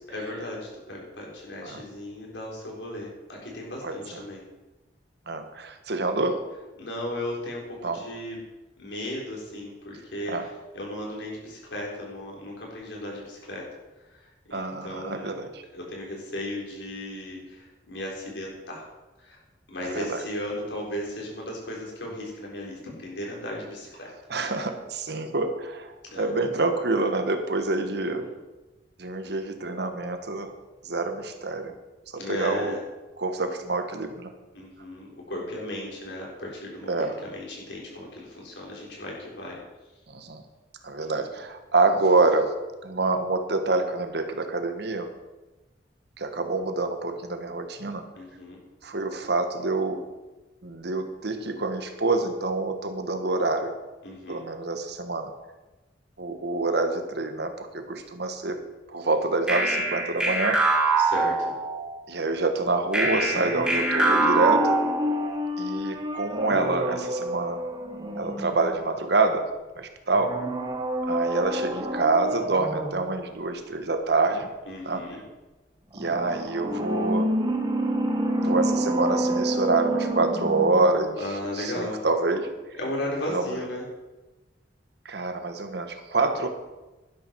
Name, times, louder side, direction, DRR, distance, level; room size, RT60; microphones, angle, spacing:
voice 1, 0.1-4.4 6.8-8.4 8.8-13.6 14.1-15.4 15.7-18.9 19.2-19.4 19.7-24.1 26.0-26.3 27.9-28.3 32.2-32.8 34.5-39.6 48.2-48.6 54.0-54.4 61.0-61.5 74.7-75.2 81.2-82.0 82.8-83.9, left 1 dB, 85° left, -2 dB, 4.2 m, -36 dB
voice 2, 3.8-4.2 5.3-6.4 7.8-8.0 10.3-10.5 14.5-15.6 19.8-20.2 24.3-28.3 29.0-30.5 30.8-31.7 32.1-32.8 33.2-34.3 36.9-37.2 40.1-40.4 40.8-42.5 42.8-45.1 46.2-48.0 48.8-50.1 50.6-53.7 54.3-55.3 56.2-58.6 58.9-60.6 62.1-64.7 65.6-67.6 68.2-69.5 69.8-70.4 71.1-74.5 74.9-75.1 75.9-77.3 78.4-81.1 81.6-82.5 83.3-83.6 85.0-86.5, right 3 dB, 65° right, 7 dB, 1.4 m, -26 dB
sound 1, 59.5-62.0 62.9-65.4, right 3 dB, 5° right, 2.0 m, -24 dB
sound 2, 63.3-69.1 70.1-73.2 75.9-81.1 81.4-81.5, equal, 25° right, 1.3 m, -29 dB
12.0 x 11.5 x 4.6 m, 1.1 s
head